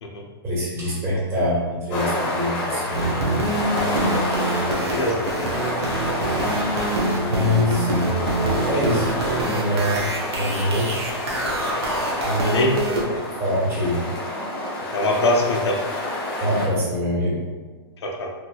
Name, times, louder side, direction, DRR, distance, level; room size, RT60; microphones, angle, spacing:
voice 1, 0.4-3.2 7.3-7.9 8.6-9.1 9.5-10.0 10.3-10.9 12.2-12.6 12.9-13.1 13.4-14.0 16.4-17.4, left 1 dB, 20° right, -7 dB, 1.2 m, -24 dB
sound 1, 1.9-16.7, left 1 dB, 35° left, 1.1 m, -28 dB
sound 2, 2.9-13.0, right 2 dB, 75° right, 0.7 m, -25 dB
sound 3, 7.9-11.4, right 2 dB, 45° right, 1.4 m, -36 dB
voice 2, 12.4-12.8 14.9-15.8 18.0-18.3, left 1 dB, 80° left, 1 dB, 0.6 m, -22 dB
3.2 x 2.8 x 2.3 m, 1.3 s
hypercardioid pair, 135°, 14 cm